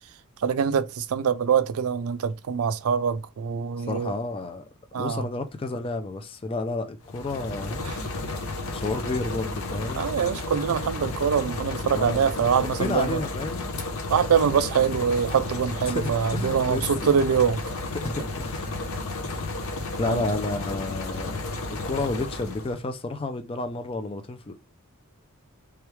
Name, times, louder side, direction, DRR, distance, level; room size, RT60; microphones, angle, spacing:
voice 1, 0.4-4.1 4.9-5.2 7.8-8.0 10.0-13.2 14.1-17.6 20.1-20.2, right 7 dB, 70° right, 0.4 m, -24 dB
voice 2, 3.8-4.7 4.9-7.8 8.7-10.1 11.9-12.2 12.8-13.6 15.9-17.1 17.9-18.8 19.3-19.6 20.0-24.5, left 3 dB, 25° left, 0.3 m, -31 dB
sound 1, 7.0-22.8, left 2 dB, 70° left, 0.9 m, -32 dB
3.4 x 3.1 x 3.3 m
head